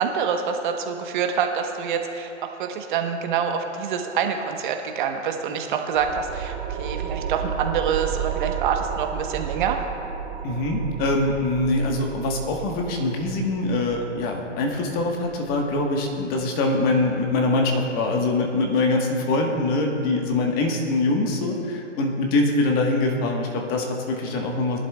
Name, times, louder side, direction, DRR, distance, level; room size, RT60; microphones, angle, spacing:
voice 1, 0.0-9.8, right 7 dB, 40° right, 5 dB, 1.1 m, -26 dB
sound 1, 5.9-17.0, right 8 dB, 25° right, 0.9 m, -33 dB
voice 2, 10.4-24.8, left 2 dB, 25° left, 1 dB, 1.3 m, -23 dB
19.0 x 11.5 x 2.3 m, 2.7 s
hypercardioid pair, 130°, 37 cm